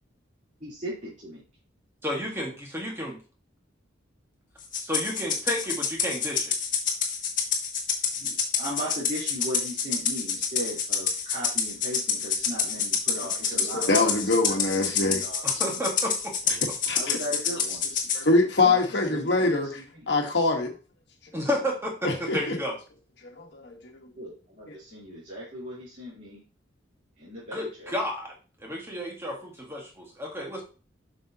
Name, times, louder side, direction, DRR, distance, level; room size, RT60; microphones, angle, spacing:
voice 1, 0.6-1.4 8.2-14.2 14.4-14.6 15.0-15.8 16.9-17.8 18.6-18.8 19.1-19.5 19.7-19.8 24.1-26.4 27.2-27.9, equal, 40° right, -11 dB, 3.4 m, -37 dB
voice 2, 2.0-3.2 4.8-6.5 15.4-16.3 21.3-22.7 27.5-28.3 28.6-30.6, left 1 dB, 15° right, 0 dB, 1.6 m, -31 dB
Rattle (instrument), 4.7-18.2, left 6 dB, 40° left, 1.4 m, -27 dB
voice 3, 13.2-15.3 16.8-17.2 18.1-20.7 22.0-22.6 23.2-23.8, left 3 dB, 60° left, 1 dB, 1.4 m, -24 dB
7.9 x 6.0 x 2.9 m, 0.36 s
head